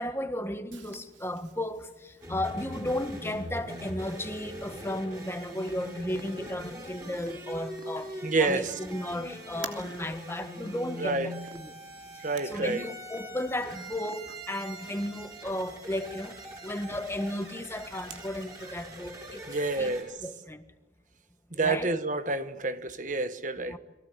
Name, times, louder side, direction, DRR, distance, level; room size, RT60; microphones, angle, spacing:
voice 1, 0.0-11.7 12.1-16.4 16.6-19.4 19.8-19.9 20.2-20.6 21.6-21.9 23.7-23.8, left 1 dB, 15° left, 1.6 m, -34 dB
Purr, 0.7-18.7, right 5 dB, 75° right, 3.2 m, -52 dB
sound 1, 2.2-20.0, equal, 20° right, 7.2 m, -42 dB
voice 2, 8.2-8.7 11.0-11.3 12.2-12.9 19.5-20.1 21.5-23.8, right 3 dB, 40° right, 1.2 m, -29 dB
29.5 x 23.0 x 8.5 m
head